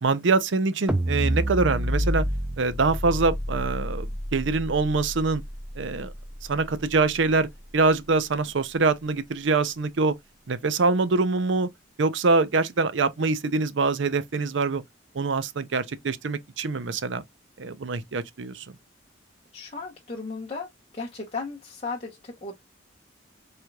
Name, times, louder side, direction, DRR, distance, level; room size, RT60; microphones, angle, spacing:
voice 1, 0.0-2.2 2.6-5.4 5.8-6.1 6.5-7.5 7.7-10.1 10.5-11.7 12.0-14.8 15.1-17.2 17.6-18.7, right 3 dB, 70° right, 0.6 m, -24 dB
sound 1, 0.9-7.2, equal, 5° right, 0.4 m, -29 dB
voice 2, 19.5-22.6, left 4 dB, 30° left, 0.8 m, -35 dB
4.5 x 3.3 x 2.3 m
head